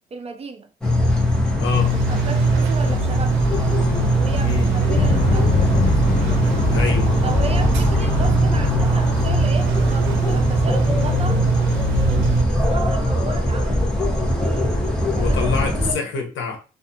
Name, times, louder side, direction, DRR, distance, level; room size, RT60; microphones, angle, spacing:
voice 1, 0.1-0.7 2.1-3.4 4.1-5.5 7.2-11.4 12.1-14.8 15.2-16.0, right 4 dB, 30° right, 0.5 m, -34 dB
sound 1, 0.8-15.9, left 1 dB, 5° left, 1.0 m, -21 dB
voice 2, 1.6-2.0 4.4-4.8 6.7-7.1 8.0-8.1 15.1-16.6, left 6 dB, 75° left, 0.8 m, -24 dB
sound 2, 1.6-12.4, right 16 dB, 85° right, 0.5 m, -24 dB
sound 3, 4.9-13.4, left 4 dB, 35° left, 0.5 m, -25 dB
2.5 x 2.3 x 2.7 m
cardioid pair, 90°, 20 cm